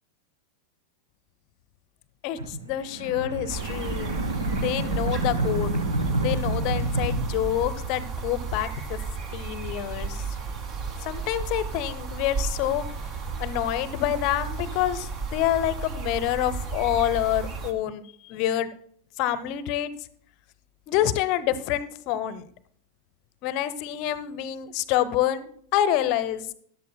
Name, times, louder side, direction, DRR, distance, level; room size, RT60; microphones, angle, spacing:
voice 1, 2.2-4.2 4.5-5.7 6.2-9.0 9.3-10.2 11.0-12.8 13.4-18.7 19.2-19.9 20.9-22.5 23.4-26.5, left 12 dB, 40° left, 15 dB, 0.7 m, -27 dB
sound 1, 2.4-8.2, right 2 dB, 75° right, 1.3 m, -29 dB
sound 2, 3.5-17.7, right 4 dB, 35° right, 1.3 m, -34 dB
14.0 x 11.0 x 2.2 m, 0.62 s
figure-of-eight pair, 90°, 0 cm